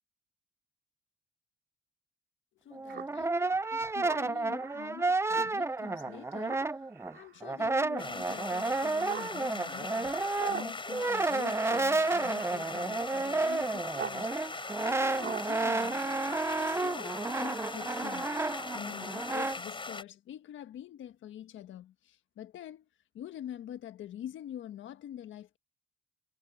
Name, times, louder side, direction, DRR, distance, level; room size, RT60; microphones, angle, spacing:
voice 1, 2.6-6.7 7.1-14.4 14.8-16.1 16.6-22.9 23.1-25.6, left 11 dB, 75° left, 1.5 m, -46 dB
Brass instrument, 2.7-7.1 7.4-19.6, right 3 dB, 15° right, 0.6 m, -31 dB
Speech synthesizer, 2.9-14.2 14.5-16.7, right 9 dB, 65° right, 5.8 m, -45 dB
sound 1, 8.0-20.0, left 3 dB, 25° left, 4.1 m, -40 dB
cardioid pair, 90°, 20 cm